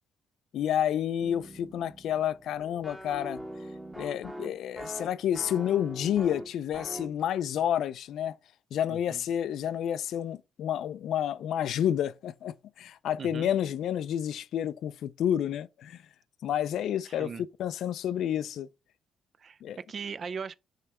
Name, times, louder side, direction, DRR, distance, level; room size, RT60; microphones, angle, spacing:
voice 1, 0.5-3.4 4.0-8.3 8.7-16.0 16.4-17.3 17.6-18.7 19.6-19.8, left 10 dB, 70° left, 0.4 m, -30 dB
sound 1, 1.2-7.2, equal, 5° right, 1.0 m, -42 dB
voice 2, 8.9-9.2 13.2-13.5 17.1-17.4 19.4-19.6 19.9-20.6, right 6 dB, 40° right, 0.5 m, -39 dB
6.4 x 3.3 x 5.9 m
cardioid pair, 120°, 0 cm